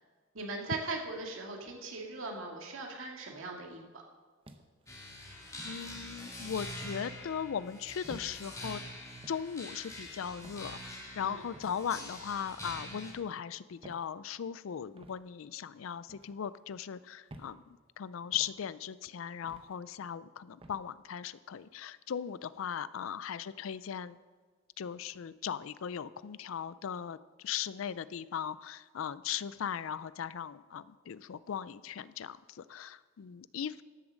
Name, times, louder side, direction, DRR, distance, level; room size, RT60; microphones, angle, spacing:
voice 1, 0.3-3.8 11.2-11.4, right 3 dB, 80° right, 1 dB, 2.0 m, -39 dB
sound 1, 4.4-4.9 5.6-5.8 6.8-7.0 8.0-8.3 9.2-9.5 10.4-10.7 11.5-11.8 12.6-12.9 13.8-14.1 15.0-15.2 16.1-16.3 17.3-17.5 18.3-18.6 19.5-19.7 20.6-20.8, right 1 dB, 30° right, 0.8 m, -51 dB
sound 2, 4.9-13.1, left 1 dB, 15° left, 2.2 m, -45 dB
voice 2, 5.6-8.8 9.3-17.6 18.0-24.2 24.8-27.2 27.4-33.8, left 8 dB, 80° left, 17 dB, 0.4 m, -38 dB
13.0 x 7.0 x 6.4 m, 1.5 s
head